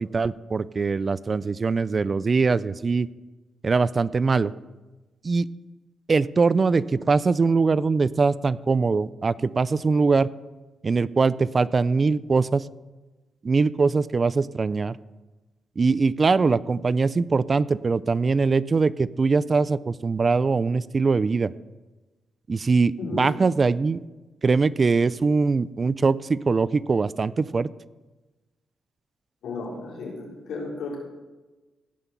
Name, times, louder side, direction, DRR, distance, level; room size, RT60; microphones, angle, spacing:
voice 1, 0.0-3.1 3.6-4.5 5.2-5.5 6.1-10.3 10.8-12.7 13.4-15.0 15.8-21.5 22.5-24.0 24.4-27.7, right 4 dB, 35° right, 18 dB, 0.4 m, -22 dB
voice 2, 23.0-23.3 29.4-31.0, left 3 dB, 85° left, -3 dB, 4.0 m, -33 dB
16.5 x 5.7 x 6.9 m, 1.2 s
cardioid pair, 90°, 0 cm